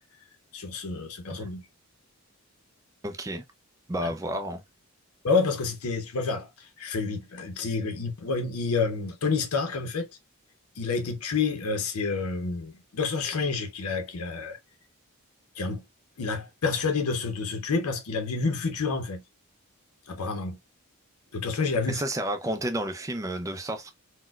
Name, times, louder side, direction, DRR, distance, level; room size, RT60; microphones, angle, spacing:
voice 1, 0.5-1.7 4.0-4.1 5.2-10.1 10.8-14.6 15.6-15.8 16.2-19.2 20.1-20.6 21.3-22.0, left 4 dB, 80° left, 0.7 m, -29 dB
voice 2, 3.0-3.4 3.9-4.6 21.9-23.9, right 1 dB, 15° right, 0.3 m, -31 dB
4.1 x 2.1 x 2.3 m
head